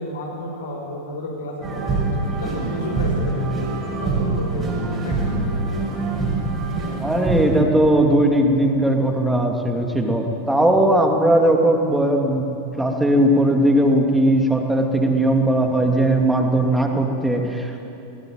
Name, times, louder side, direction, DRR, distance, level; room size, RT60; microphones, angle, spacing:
voice 1, 0.0-2.0 2.4-3.3 4.0-4.7 5.0-5.2, equal, 65° left, -2 dB, 5.3 m, -31 dB
sound 1, 1.6-7.6, right 3 dB, 20° right, 6.3 m, -24 dB
voice 2, 7.0-12.5 12.8-17.8, right 1 dB, 5° right, 2 dB, 2.8 m, -18 dB
21.5 x 19.5 x 8.9 m, 2.8 s
figure-of-eight pair, 90°, 0 cm